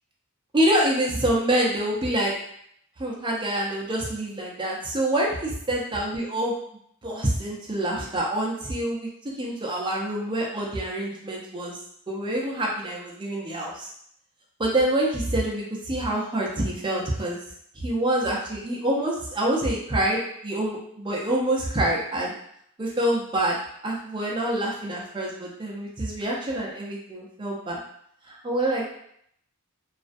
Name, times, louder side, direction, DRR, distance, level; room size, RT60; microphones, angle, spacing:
voice 1, 0.5-2.3 3.0-6.6 7.0-9.1 9.4-11.8 12.1-13.9 14.6-17.4 17.7-22.3 22.8-23.5 23.8-27.8 28.3-28.9, right 1 dB, 20° right, -3 dB, 0.5 m, -26 dB
2.4 x 2.2 x 2.5 m, 0.69 s
head